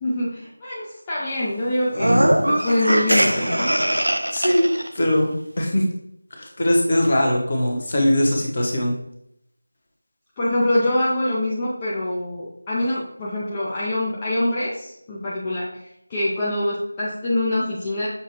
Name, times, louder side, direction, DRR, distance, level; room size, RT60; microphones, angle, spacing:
voice 1, 0.0-3.8 10.4-18.1, left 1 dB, 15° left, -8 dB, 0.5 m, -25 dB
sound 1, 1.9-4.9, right 1 dB, 75° right, 0.4 m, -20 dB
voice 2, 4.3-4.6 4.9-5.3 5.6-5.8 6.3-8.9, left 1 dB, 35° left, 0 dB, 0.9 m, -20 dB
6.5 x 2.3 x 2.9 m, 0.74 s
figure-of-eight pair, 165°, 0 cm